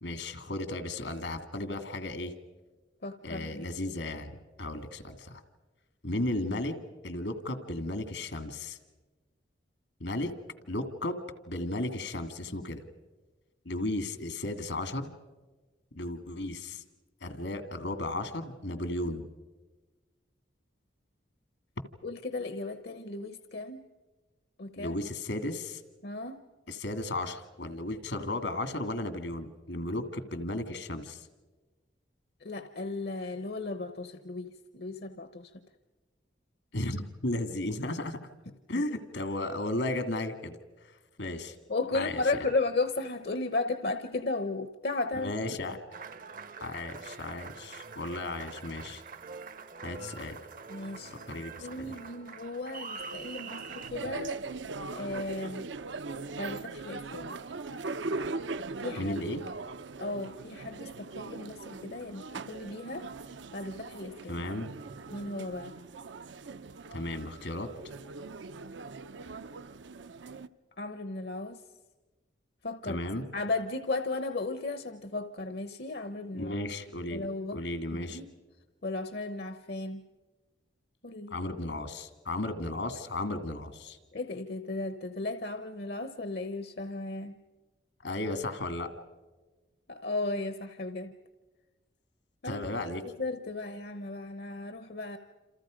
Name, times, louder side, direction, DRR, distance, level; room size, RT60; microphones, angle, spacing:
voice 1, 0.0-2.3 3.2-5.4 6.0-6.7 7.0-8.8 10.0-10.3 10.7-11.2 11.5-12.8 13.7-15.1 15.9-16.8 17.2-19.3 24.8-25.8 26.7-31.3 36.7-38.2 38.7-40.6 41.2-41.6 41.9-42.2 45.2-45.8 46.6-49.0 49.8-50.4 51.3-52.0 59.0-59.4 64.3-64.7 66.9-67.7 72.8-73.3 76.3-78.2 81.3-84.0 88.0-88.9 92.4-93.0, left 1 dB, 80° left, 9 dB, 2.1 m, -34 dB
voice 2, 3.0-3.6 22.0-23.8 24.6-25.0 26.0-26.4 32.4-35.5 41.7-45.8 50.7-51.2 51.6-54.4 54.9-55.7 56.4-57.4 58.8-59.1 60.0-63.1 63.5-64.4 65.1-65.8 70.8-71.6 72.6-73.0 73.3-76.5 77.1-77.6 77.9-78.3 78.8-80.0 81.0-81.4 84.1-87.4 88.1-88.2 89.9-91.1 92.4-92.8 93.2-95.2, left 3 dB, 60° left, 10 dB, 0.9 m, -35 dB
Applause, 45.9-53.9, right 4 dB, 45° right, 0.7 m, -45 dB
sound 1, 53.0-70.5, right 3 dB, 80° right, 0.7 m, -40 dB
28.0 x 28.0 x 5.1 m, 1.2 s
head